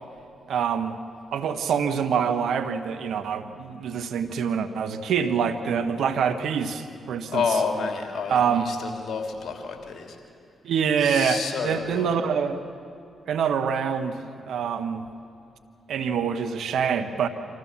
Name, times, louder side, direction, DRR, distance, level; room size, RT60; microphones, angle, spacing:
voice 1, 0.5-1.0 1.3-7.6 8.3-8.7 10.6-12.6 13.3-14.2 14.5-15.1 15.9-17.3, right 7 dB, 75° right, 9 dB, 1.1 m, -25 dB
voice 2, 7.3-10.1 11.0-12.1, left 5 dB, 60° left, 3 dB, 2.9 m, -29 dB
25.0 x 14.5 x 7.3 m, 2.5 s
hypercardioid pair, 45°, 0 cm